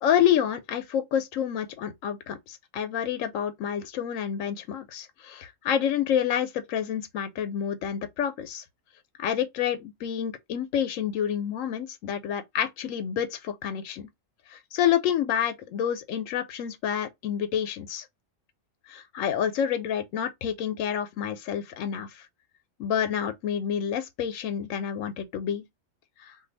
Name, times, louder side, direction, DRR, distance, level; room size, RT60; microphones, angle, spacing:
voice 1, 0.0-8.6 9.2-14.1 14.5-18.0 18.9-22.2 22.8-25.7 26.3-26.4, left 9 dB, 85° left, 1.0 m, -28 dB
2.6 x 2.4 x 3.9 m
omnidirectional pair, 1.3 m